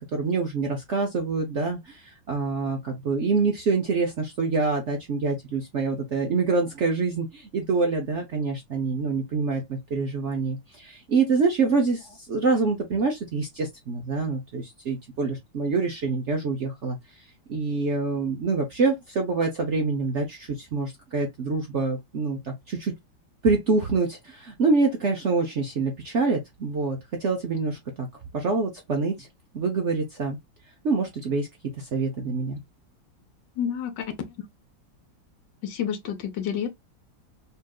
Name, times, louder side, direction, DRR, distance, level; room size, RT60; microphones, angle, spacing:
voice 1, 0.0-17.0 17.5-22.9 23.4-28.1 28.3-29.3 29.5-30.4 30.8-31.5 31.8-32.6, right 4 dB, 60° right, 0.8 m, -26 dB
voice 2, 33.6-34.1 35.6-36.7, left 8 dB, 75° left, 1.4 m, -29 dB
5.4 x 2.5 x 2.3 m
omnidirectional pair, 2.0 m